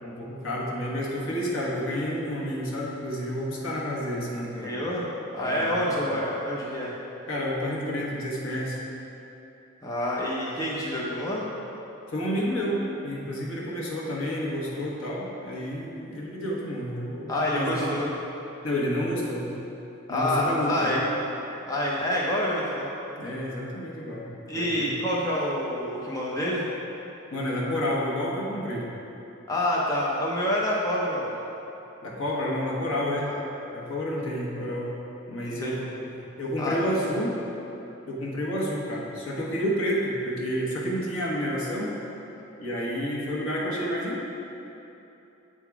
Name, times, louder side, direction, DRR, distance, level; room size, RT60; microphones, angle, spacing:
voice 1, 0.0-4.7 5.4-6.1 7.3-8.8 12.1-18.0 18.6-19.5 20.1-21.0 23.2-24.3 24.5-25.0 27.3-28.8 32.0-33.3 33.7-35.0 35.3-35.8 36.4-37.4 38.1-41.9 42.6-44.3, equal, 75° left, -4 dB, 1.2 m, -30 dB
voice 2, 4.6-5.1 5.3-6.9 9.8-11.5 17.3-18.1 20.1-21.1 21.7-22.9 24.5-26.7 29.5-31.4 33.3-33.4 35.4-35.7 36.6-37.0, left 1 dB, 15° left, -6 dB, 0.7 m, -27 dB
8.2 x 3.7 x 4.7 m, 3.0 s
head